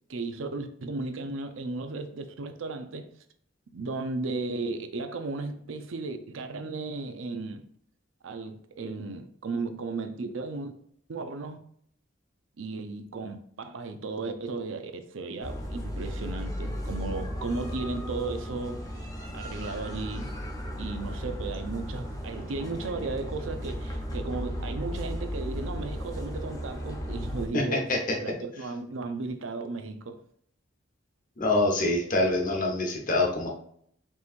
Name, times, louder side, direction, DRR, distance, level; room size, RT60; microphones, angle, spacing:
voice 1, 0.1-3.1 3.7-7.6 8.2-10.7 11.1-11.6 12.6-18.9 19.3-20.4 20.8-27.9 28.2-30.2, right 3 dB, 85° right, 0.5 m, -35 dB
sound 1, 15.4-27.5, equal, 20° left, 0.8 m, -35 dB
voice 2, 27.5-28.2 31.4-33.5, left 2 dB, 45° left, 1.0 m, -25 dB
5.4 x 3.1 x 2.5 m
head